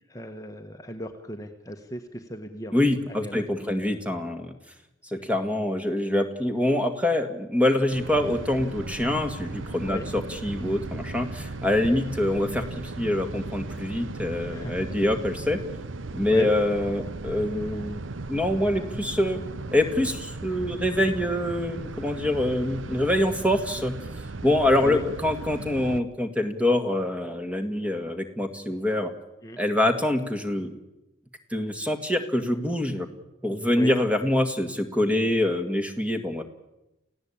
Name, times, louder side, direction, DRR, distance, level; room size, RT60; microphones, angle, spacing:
voice 1, 0.1-3.8 9.8-10.1 14.5-14.8 16.3-16.5 24.8-25.1 29.4-29.6 33.7-34.0, equal, 15° left, 4 dB, 1.4 m, -36 dB
voice 2, 2.7-4.5 5.1-12.6 13.0-15.6 16.1-18.0 18.3-19.4 19.7-23.9 24.4-29.1 29.6-30.7 31.5-33.1 33.4-36.4, left 1 dB, 5° right, 6 dB, 2.0 m, -25 dB
sound 1, 7.9-26.0, right 2 dB, 75° right, 0.9 m, -36 dB
29.0 x 16.5 x 8.7 m, 0.93 s
head